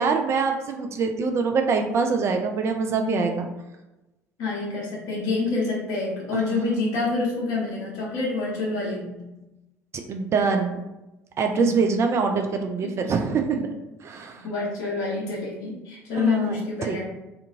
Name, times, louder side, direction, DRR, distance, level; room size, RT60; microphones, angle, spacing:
voice 1, 0.0-3.5 6.3-6.4 10.1-10.8 11.4-13.6 14.0-14.5 16.1-17.0, right 5 dB, 35° right, 4 dB, 0.3 m, -24 dB
voice 2, 4.4-9.2 11.6-11.8 12.8-12.9 14.4-17.0, left 3 dB, 55° left, -5 dB, 1.1 m, -27 dB
2.5 x 2.5 x 2.6 m, 1.0 s
figure-of-eight pair, 60°, 8 cm